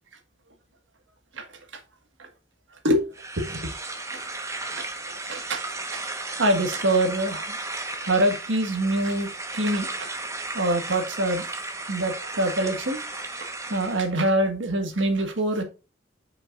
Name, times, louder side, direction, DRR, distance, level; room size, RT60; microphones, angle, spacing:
sound 1, 3.1-14.1, right 2 dB, 15° right, 1.2 m, -35 dB
voice 1, 3.4-4.2 4.7-4.8 5.3-5.6 5.9-6.0 6.4-7.5 8.0-10.2 10.5-11.4 11.9-13.0 13.4-15.6, right 1 dB, 80° right, 6 dB, 1.7 m, -25 dB
7.6 x 6.1 x 2.5 m, 0.30 s
head